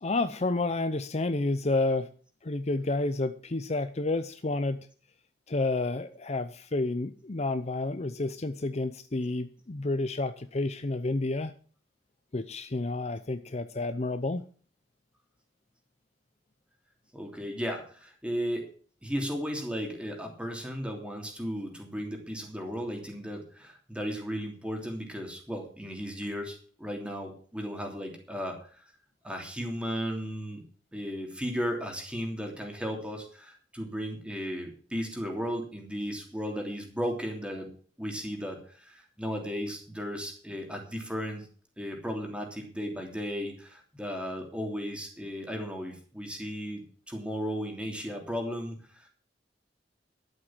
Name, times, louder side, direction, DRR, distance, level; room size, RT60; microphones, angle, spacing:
voice 1, 0.0-2.1 2.4-4.9 5.5-11.5 12.3-14.4, left 2 dB, 35° left, 11 dB, 0.7 m, -30 dB
voice 2, 17.1-18.7 19.0-28.8 29.2-30.6 30.9-37.7 38.0-41.5 41.8-49.1, equal, 5° right, 2 dB, 3.0 m, -35 dB
12.0 x 8.1 x 7.4 m, 0.44 s
head